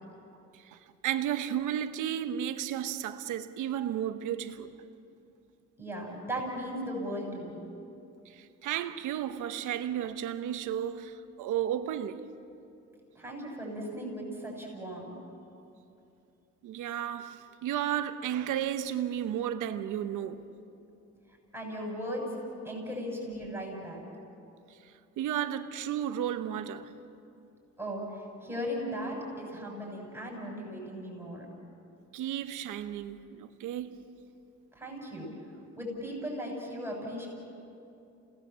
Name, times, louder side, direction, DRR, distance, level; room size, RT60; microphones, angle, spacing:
voice 1, 0.5-4.7 8.3-12.3 16.6-20.4 24.8-26.9 32.1-34.0, right 10 dB, 90° right, 1.1 m, -33 dB
voice 2, 5.8-7.7 13.2-15.2 21.5-22.3 22.6-24.0 27.8-31.5 34.7-35.3 35.8-37.3, equal, 10° right, 6.9 m, -37 dB
28.0 x 18.5 x 7.5 m
cardioid pair, 90°, 30 cm